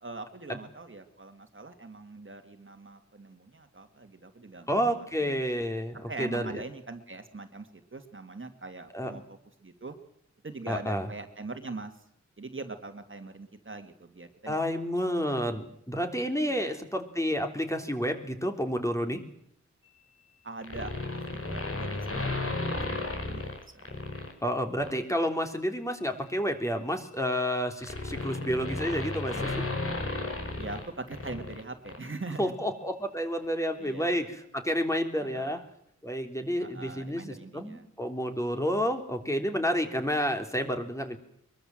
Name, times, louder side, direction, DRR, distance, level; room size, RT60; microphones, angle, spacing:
voice 1, 0.0-5.4 6.1-10.0 10.4-11.9 12.4-14.6 16.5-16.8 20.4-23.9 30.6-32.5 33.8-34.3 35.2-35.6 36.6-37.9, right 3 dB, 45° right, 7 dB, 2.5 m, -42 dB
voice 2, 4.7-6.6 8.9-9.1 10.7-11.1 14.5-19.2 24.4-29.6 32.4-35.7 36.0-41.2, equal, 10° left, 5 dB, 3.5 m, -30 dB
sound 1, 20.6-24.3 24.8-25.0 26.2-31.6 31.9-32.0, left 2 dB, 50° left, 5.9 m, -34 dB
23.0 x 22.5 x 7.9 m, 0.71 s
wide cardioid pair, 90°, 29 cm